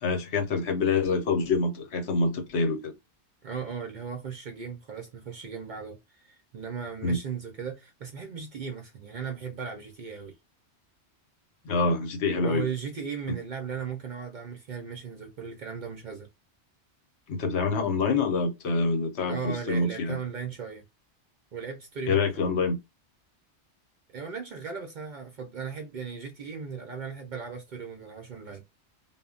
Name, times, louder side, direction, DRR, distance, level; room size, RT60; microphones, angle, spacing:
voice 1, 0.0-2.9 7.0-7.2 11.6-12.7 13.3-13.4 17.3-20.2 22.1-22.8, left 3 dB, 70° left, 0.9 m, -26 dB
voice 2, 3.4-10.4 12.4-16.3 19.3-20.8 21.5-22.5 24.1-28.6, right 6 dB, 60° right, 0.5 m, -37 dB
2.1 x 2.0 x 3.6 m
omnidirectional pair, 1.2 m